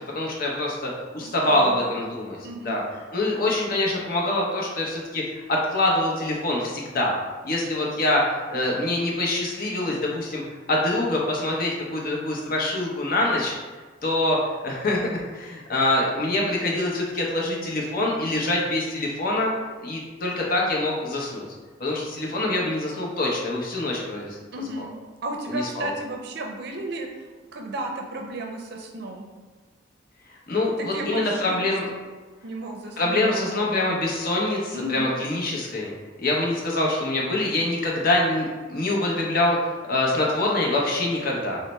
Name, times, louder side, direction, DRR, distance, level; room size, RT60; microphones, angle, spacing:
voice 1, 0.1-2.4 2.6-2.8 3.1-5.2 5.5-7.1 7.4-10.4 10.7-13.5 14.0-19.5 19.8-21.4 21.8-24.4 25.5-25.9 30.5-31.9 33.0-35.9 36.2-41.6, left 2 dB, 50° left, -2 dB, 0.7 m, -25 dB
voice 2, 1.2-2.0 2.4-2.8 24.5-24.9 25.2-27.1 27.5-29.3 30.8-32.0 32.4-33.6 34.7-35.1, right 1 dB, 60° right, 1 dB, 0.5 m, -33 dB
3.1 x 2.0 x 4.1 m, 1.4 s
head